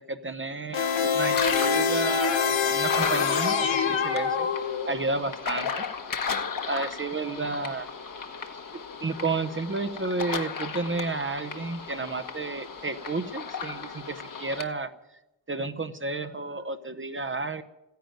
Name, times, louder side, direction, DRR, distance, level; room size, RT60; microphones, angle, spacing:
voice 1, 0.1-4.5 4.8-5.7 6.2-6.3 6.7-7.9 9.0-14.9 15.5-17.6, right 3 dB, 25° right, 9 dB, 0.8 m, -31 dB
sound 1, 0.7-5.1, left 6 dB, 85° left, 1.5 m, -25 dB
sound 2, 0.9-14.6, left 5 dB, 45° left, 1.4 m, -35 dB
15.5 x 10.5 x 9.1 m, 0.93 s
wide cardioid pair, 145°, 44 cm